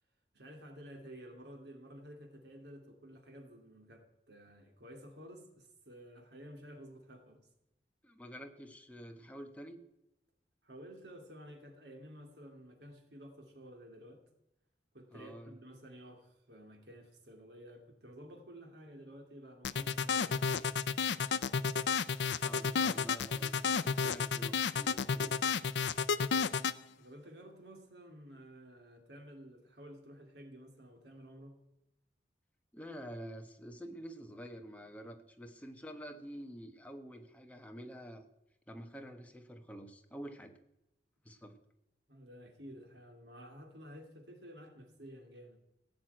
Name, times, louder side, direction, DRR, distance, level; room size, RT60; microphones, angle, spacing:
voice 1, 0.3-7.4 10.6-14.2 14.9-20.5 27.0-31.6 42.1-45.6, equal, 75° right, 4 dB, 2.6 m, -52 dB
voice 2, 8.0-9.8 15.1-15.6 22.4-25.4 32.7-38.2 38.7-40.5 41.2-41.6, equal, 10° left, 5 dB, 1.1 m, -48 dB
sound 1, 19.6-26.8, left 6 dB, 85° left, 0.5 m, -31 dB
15.5 x 6.2 x 9.0 m, 0.87 s
head